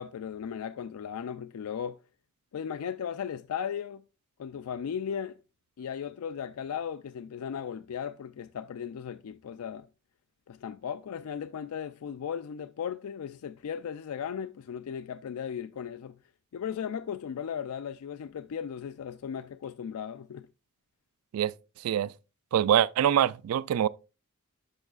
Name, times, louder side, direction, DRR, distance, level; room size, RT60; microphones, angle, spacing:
voice 1, 0.0-2.0 2.5-4.0 4.4-5.4 5.8-9.9 10.5-16.2 16.5-20.5, left 8 dB, 80° left, 0.4 m, -36 dB
voice 2, 22.5-23.9, right 10 dB, 75° right, 0.3 m, -24 dB
12.5 x 5.4 x 2.4 m
head